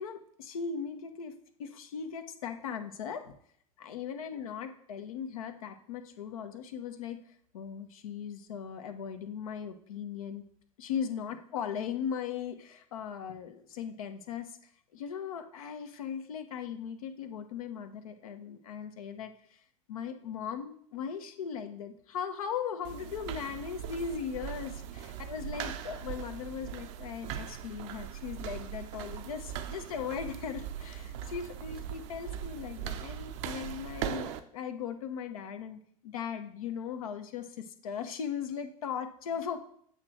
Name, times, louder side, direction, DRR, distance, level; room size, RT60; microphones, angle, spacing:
voice 1, 0.0-1.3 1.6-3.3 3.8-7.2 7.5-10.5 10.8-14.6 14.9-19.6 19.9-39.6, left 7 dB, 75° left, 7 dB, 0.9 m, -38 dB
sound 1, 22.8-34.4, right 10 dB, 60° right, 0.7 m, -40 dB
8.3 x 3.2 x 6.3 m, 0.65 s
figure-of-eight pair, 75°, 18 cm